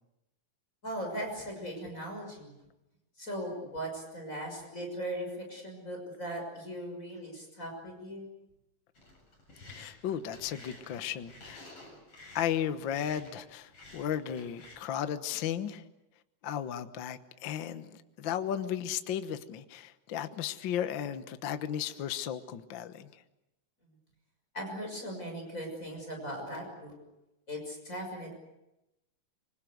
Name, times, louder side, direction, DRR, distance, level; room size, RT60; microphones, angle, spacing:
voice 1, 0.8-2.6 3.2-8.3 24.5-26.9 27.5-28.3, equal, 20° left, 6.4 m, -39 dB
sound 1, 8.9-14.8, left 2 dB, 40° left, 8.5 m, -52 dB
voice 2, 9.7-11.7 12.3-15.8 16.4-23.2, left 9 dB, 80° left, 1.0 m, -35 dB
26.0 x 25.5 x 7.9 m
omnidirectional pair, 4.0 m